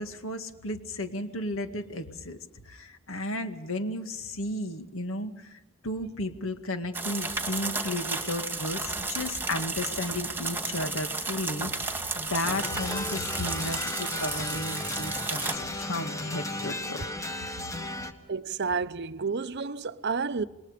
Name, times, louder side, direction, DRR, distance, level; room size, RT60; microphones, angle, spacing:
voice 1, 0.0-2.4 2.7-17.1, left 1 dB, 75° left, 2.0 m, -34 dB
sound 1, 6.9-15.6, right 3 dB, 10° right, 2.3 m, -33 dB
sound 2, 12.4-18.1, left 2 dB, 15° left, 1.5 m, -35 dB
voice 2, 18.3-20.4, right 5 dB, 55° right, 0.7 m, -30 dB
27.5 x 21.5 x 5.2 m
head